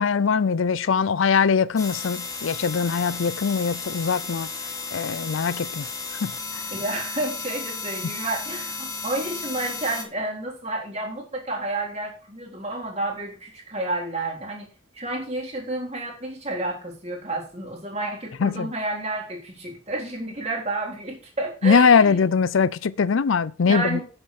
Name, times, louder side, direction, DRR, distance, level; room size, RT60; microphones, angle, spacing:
voice 1, 0.0-4.5 4.9-5.8 6.2-6.6 18.4-18.7 21.6-24.0, left 5 dB, 70° left, 0.5 m, -21 dB
sound 1, 1.8-10.0, left 4 dB, 15° left, 1.7 m, -34 dB
voice 2, 6.7-14.7 14.9-22.2 23.7-24.0, right 2 dB, 30° right, 3.6 m, -30 dB
9.3 x 8.1 x 4.8 m
head